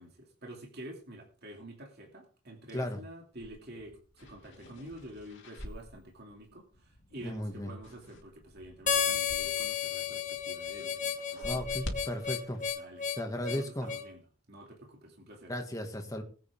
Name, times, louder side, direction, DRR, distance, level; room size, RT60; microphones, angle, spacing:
voice 1, 0.0-10.9 11.3-11.6 12.8-13.1 13.3-14.2 14.5-15.5, right 1 dB, 45° right, 0 dB, 2.6 m, -48 dB
sound 1, 3.4-9.7 10.0-12.7, left 1 dB, 55° left, 2.7 m, -47 dB
voice 2, 7.2-7.7 11.4-12.6 13.2-13.9 15.5-16.2, left 1 dB, 15° left, 4 dB, 2.0 m, -35 dB
Harmonica, 8.9-14.1, left 7 dB, 35° left, 1.3 m, -33 dB
21.0 x 8.5 x 3.7 m, 0.39 s
head